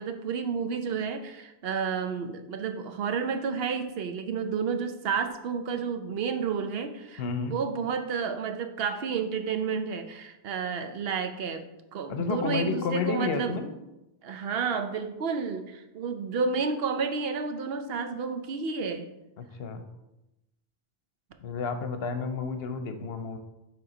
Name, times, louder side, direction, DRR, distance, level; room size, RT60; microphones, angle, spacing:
voice 1, 0.0-7.2 7.5-11.6 11.9-13.6 14.2-19.1, right 5 dB, 70° right, 7 dB, 0.9 m, -31 dB
voice 2, 7.2-7.6 12.1-13.7 19.4-19.9 21.4-23.4, left 5 dB, 75° left, 7 dB, 0.9 m, -31 dB
7.0 x 3.5 x 4.9 m, 0.94 s
omnidirectional pair, 1.1 m